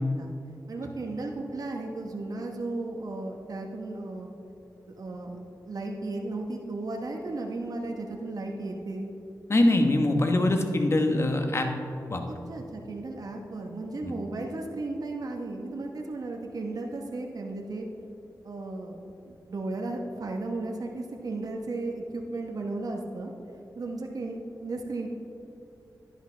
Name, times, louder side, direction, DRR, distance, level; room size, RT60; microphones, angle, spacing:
voice 1, 0.7-4.3 5.0-5.3 5.6-9.1 12.2-17.9 18.4-18.9 19.3-23.3 23.7-25.1, right 2 dB, 60° right, 1 dB, 1.0 m, -35 dB
voice 2, 9.5-11.7 12.1-12.2 14.0-14.1, left 1 dB, 40° left, 4 dB, 1.1 m, -23 dB
11.0 x 10.5 x 3.3 m, 2.8 s
cardioid pair, 75°, 7 cm